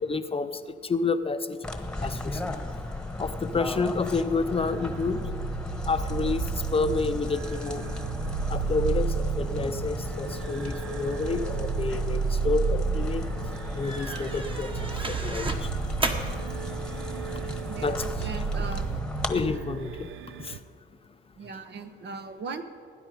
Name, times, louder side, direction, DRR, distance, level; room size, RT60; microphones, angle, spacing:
voice 1, 0.1-1.6 2.0-2.4 3.2-5.3 5.9-7.9 8.5-13.3 13.7-14.7 15.1-15.7 16.0-16.1 17.8-18.3 19.3-20.1 20.4-20.6, left 4 dB, 30° left, 10 dB, 0.6 m, -29 dB
sound 1, 1.6-19.3, left 1 dB, 5° left, 1.2 m, -35 dB
sound 2, 4.6-20.6, right 6 dB, 80° right, 0.6 m, -33 dB
sound 3, 13.8-19.0, right 2 dB, 25° right, 1.4 m, -36 dB
voice 2, 17.7-18.9 21.4-22.6, right 4 dB, 60° right, 8 dB, 1.1 m, -38 dB
18.5 x 9.8 x 5.1 m, 2.2 s
cardioid pair, 90°, 20 cm